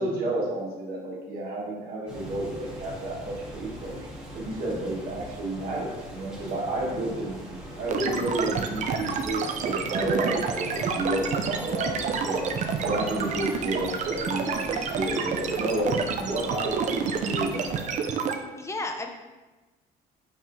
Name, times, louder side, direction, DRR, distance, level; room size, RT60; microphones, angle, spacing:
voice 1, 0.0-4.0 4.3-7.4 7.8-12.5 12.8-18.1, right 1 dB, 65° right, -4 dB, 1.2 m, -31 dB
sound 1, 2.0-17.9, equal, 5° right, 1.3 m, -41 dB
sound 2, 7.7-13.7, left 1 dB, 55° left, 0.8 m, -45 dB
sound 3, 7.9-18.3, right 6 dB, 45° right, 0.4 m, -29 dB
voice 2, 18.6-19.1, left 2 dB, 15° left, 4 dB, 0.4 m, -34 dB
4.2 x 4.2 x 2.5 m, 1.2 s
cardioid pair, 110°, 17 cm